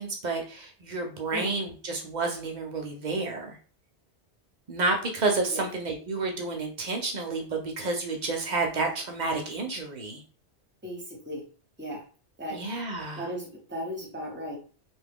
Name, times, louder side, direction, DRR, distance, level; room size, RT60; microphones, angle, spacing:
voice 1, 0.0-3.6 4.7-10.2 12.5-13.3, right 3 dB, 50° right, 3 dB, 0.6 m, -30 dB
voice 2, 10.8-11.4 11.8-12.0 12.4-12.6 13.1-14.6, equal, 10° right, -1 dB, 0.8 m, -36 dB
2.8 x 2.3 x 3.5 m, 0.39 s
omnidirectional pair, 1.2 m